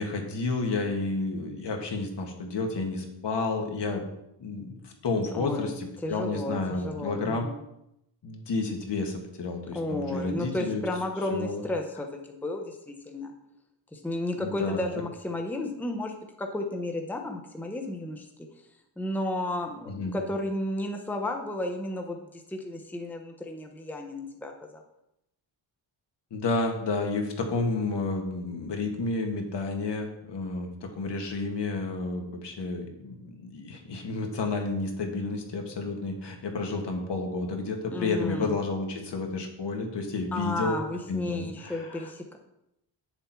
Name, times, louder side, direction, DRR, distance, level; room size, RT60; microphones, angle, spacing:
voice 1, 0.0-4.0 4.4-7.5 8.2-10.8 11.3-11.6 14.4-14.9 19.9-20.2 26.3-40.8 41.1-42.1, left 3 dB, 65° left, 3 dB, 1.7 m, -31 dB
voice 2, 5.3-7.6 9.7-13.3 13.9-18.3 19.0-24.8 37.9-38.5 40.3-42.4, left 1 dB, 5° left, 3 dB, 0.8 m, -33 dB
8.7 x 7.0 x 4.5 m, 0.83 s
wide cardioid pair, 155°, 44 cm